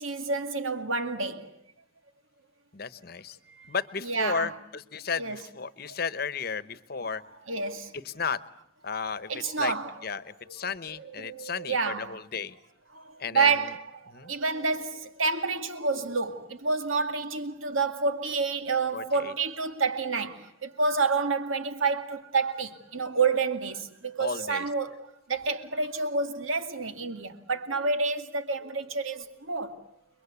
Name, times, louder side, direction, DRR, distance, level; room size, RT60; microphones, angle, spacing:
voice 1, 0.0-1.5 3.6-3.7 4.0-4.5 5.2-5.4 7.5-7.9 9.3-9.9 10.5-10.6 11.0-12.2 12.9-25.0 25.3-29.8, right 4 dB, 90° right, 2.2 m, -29 dB
voice 2, 2.7-3.4 3.7-7.2 8.0-8.4 8.8-9.3 9.6-9.7 10.0-12.6 13.2-13.7 14.1-14.3 18.9-19.3 24.2-24.7, left 5 dB, 50° left, 1.0 m, -33 dB
30.0 x 22.5 x 8.3 m
head